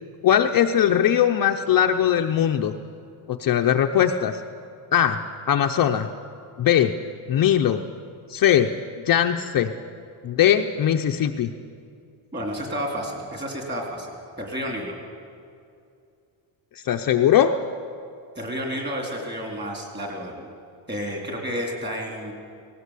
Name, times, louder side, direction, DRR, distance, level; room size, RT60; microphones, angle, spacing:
voice 1, 0.2-2.7 3.3-4.4 4.9-5.2 5.5-6.1 6.6-6.9 7.3-7.8 8.3-8.7 9.1-9.7 10.2-11.5 16.8-17.6, left 10 dB, 45° left, 5 dB, 0.7 m, -20 dB
voice 2, 12.3-14.1 14.4-15.0 18.4-20.5 20.9-22.3, equal, 20° right, 1 dB, 3.8 m, -31 dB
18.5 x 17.5 x 8.3 m, 2.4 s
cardioid pair, 165°, 50 cm